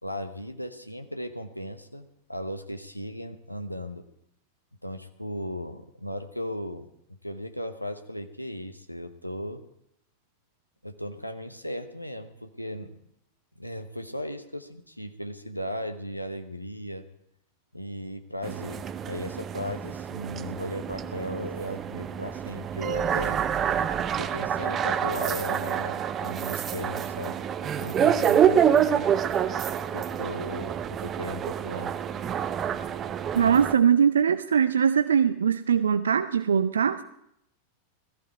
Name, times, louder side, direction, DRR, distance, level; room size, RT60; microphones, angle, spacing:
voice 1, 0.0-4.0 4.8-6.9 7.2-9.6 10.8-12.9 13.6-17.1 17.7-23.4 24.2-27.4 27.8-29.1 29.9-31.9, equal, 90° left, 8 dB, 0.9 m, -36 dB
sound 1, 18.4-33.7, right 8 dB, 25° right, 0.7 m, -27 dB
voice 2, 33.3-37.0, right 7 dB, 70° right, 11 dB, 0.5 m, -21 dB
16.5 x 14.5 x 4.6 m, 0.75 s
figure-of-eight pair, 90°, 0 cm